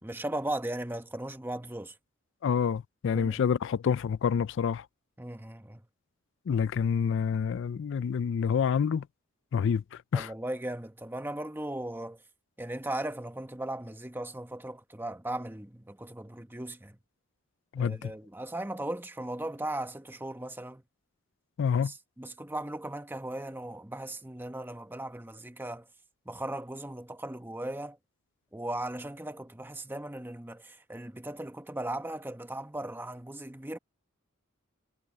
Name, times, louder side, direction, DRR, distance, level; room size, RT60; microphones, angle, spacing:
voice 1, 0.0-1.9 3.1-3.4 5.2-5.8 10.1-12.2 12.6-17.0 17.8-20.8 21.8-25.9 26.3-28.0 28.5-33.8, right 1 dB, 10° right, 1.0 m, -37 dB
voice 2, 2.4-4.8 6.5-9.1 9.5-10.3 17.7-18.1 21.6-21.9, left 7 dB, 60° left, 0.3 m, -28 dB
head